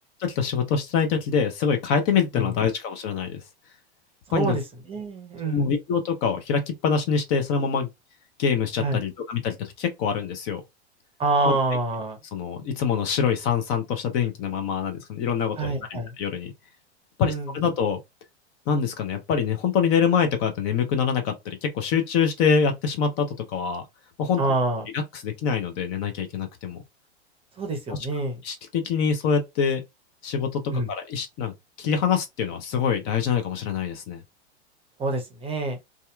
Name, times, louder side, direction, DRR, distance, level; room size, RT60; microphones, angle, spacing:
voice 1, 0.2-3.4 4.3-4.6 5.5-7.9 8.4-10.6 11.4-11.6 12.3-15.6 15.9-16.5 17.2-18.0 18.7-23.8 24.2-24.4 24.9-26.8 27.9-28.0 28.4-29.8 30.2-34.2, left 6 dB, 40° left, 0.6 m, -25 dB
voice 2, 4.3-4.6 4.9-5.7 8.8-9.0 11.2-12.2 15.6-16.2 17.2-17.5 24.4-24.9 27.6-28.4 30.7-30.9 35.0-35.8, right 2 dB, 15° right, 0.7 m, -26 dB
2.7 x 2.3 x 2.2 m
hypercardioid pair, 110°, 34 cm